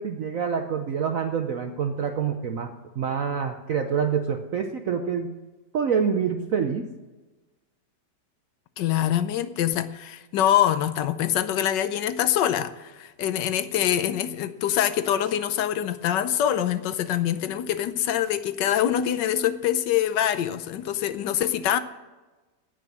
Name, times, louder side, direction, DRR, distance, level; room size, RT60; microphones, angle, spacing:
voice 1, 0.0-5.4 5.7-6.9, right 6 dB, 60° right, 6 dB, 1.0 m, -26 dB
voice 2, 8.8-21.8, left 11 dB, 80° left, 12 dB, 1.3 m, -24 dB
17.5 x 6.2 x 6.3 m, 1.2 s
omnidirectional pair, 1.9 m